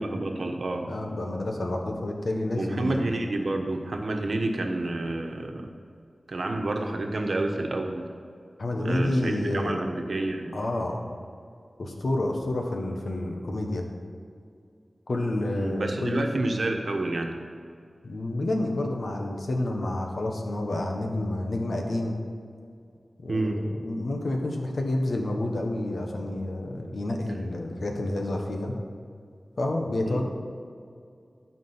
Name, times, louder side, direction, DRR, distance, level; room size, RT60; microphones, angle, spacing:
voice 1, 0.0-0.9 2.5-5.7 6.3-8.1 8.7-10.5 15.5-17.3 18.1-18.2 23.3-23.6 30.0-30.2, right 2 dB, 70° right, 3 dB, 1.1 m, -29 dB
voice 2, 0.9-3.1 8.6-9.8 10.5-11.0 11.8-13.9 15.1-16.3 18.0-22.2 23.2-28.7 29.6-30.2, left 1 dB, 80° left, 2 dB, 1.3 m, -29 dB
13.0 x 5.1 x 5.7 m, 2.3 s
wide cardioid pair, 70°, 0 cm